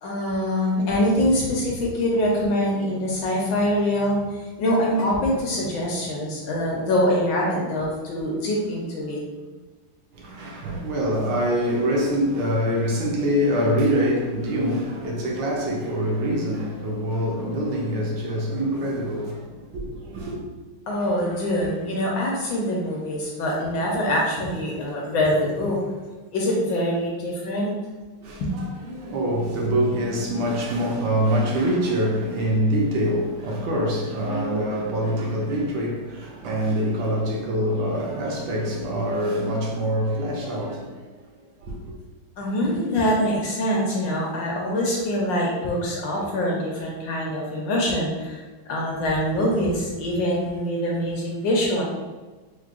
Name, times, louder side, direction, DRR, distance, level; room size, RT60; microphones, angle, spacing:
voice 1, 0.0-9.2 20.9-25.8 26.3-27.7 28.4-28.5 42.4-48.4 48.7-51.8, left 1 dB, 70° left, 1.2 m, -24 dB
voice 2, 10.2-20.4 28.2-40.9 41.6-41.7, equal, 75° right, 1.2 m, -25 dB
4.6 x 2.1 x 2.4 m
omnidirectional pair, 2.3 m